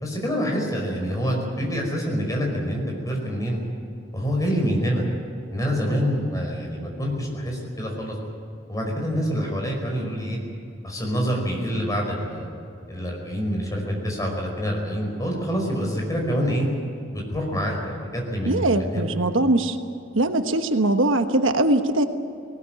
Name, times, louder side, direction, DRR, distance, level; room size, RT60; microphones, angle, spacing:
voice 1, 0.0-3.6 4.1-5.0 5.5-8.2 8.7-10.4 10.8-12.5 12.9-16.7 17.1-19.1, equal, 15° left, 0 dB, 5.1 m, -26 dB
voice 2, 18.4-19.8 20.1-22.1, right 2 dB, 80° right, 7 dB, 1.2 m, -21 dB
20.0 x 19.0 x 9.1 m, 2.5 s
head